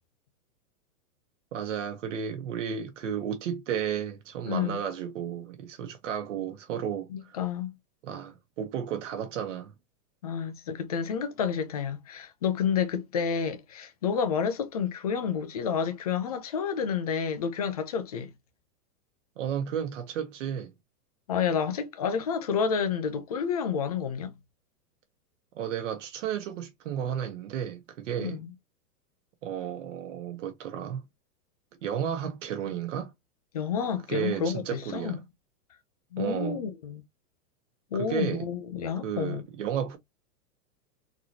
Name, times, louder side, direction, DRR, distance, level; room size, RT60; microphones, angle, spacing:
voice 1, 1.5-7.4 8.0-9.7 19.4-20.7 25.6-28.4 29.4-31.1 31.8-33.1 34.1-35.2 36.2-36.6 37.9-38.5 39.0-40.0, right 8 dB, 50° right, 1.1 m, -33 dB
voice 2, 4.5-4.8 7.1-7.7 10.2-18.3 21.3-24.3 28.2-28.5 33.5-35.2 36.1-37.0 37.9-39.4, left 7 dB, 25° left, 0.4 m, -30 dB
3.9 x 3.0 x 2.6 m
supercardioid pair, 165°, 46 cm